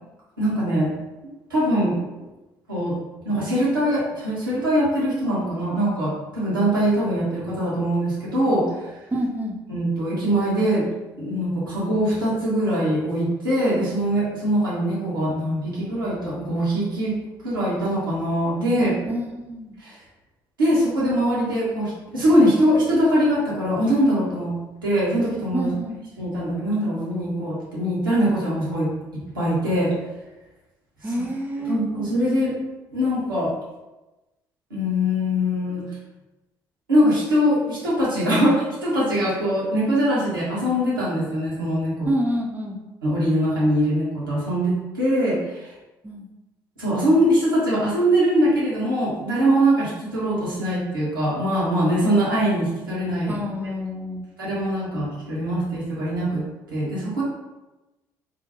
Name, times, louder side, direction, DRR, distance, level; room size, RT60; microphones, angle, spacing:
voice 1, 0.4-0.9 1.5-2.0 2.7-3.0 3.2-8.9 9.7-10.8 11.2-17.1 17.4-19.0 19.8-19.9 20.6-25.7 26.2-29.9 31.0-31.1 31.6-32.5 32.9-33.5 34.7-35.8 36.9-42.1 43.0-45.7 46.8-53.5 54.4-56.4 56.7-57.2, equal, 85° right, -8 dB, 0.8 m, -22 dB
voice 2, 9.1-9.6 19.1-19.8 25.5-26.0 31.0-31.8 42.0-42.8 46.0-46.3 53.3-54.3, equal, 15° right, -1 dB, 0.5 m, -27 dB
2.5 x 2.1 x 2.8 m, 1.1 s
figure-of-eight pair, 50°, 11 cm